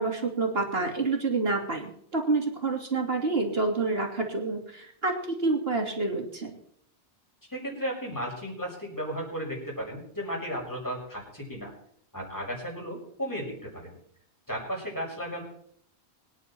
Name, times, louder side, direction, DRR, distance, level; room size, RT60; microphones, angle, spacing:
voice 1, 0.0-6.5, right 3 dB, 60° right, 2 dB, 3.1 m, -28 dB
voice 2, 7.5-11.7 12.1-14.0 14.5-15.4, equal, 15° left, -2 dB, 6.5 m, -34 dB
24.5 x 10.0 x 4.4 m, 0.68 s
omnidirectional pair, 1.1 m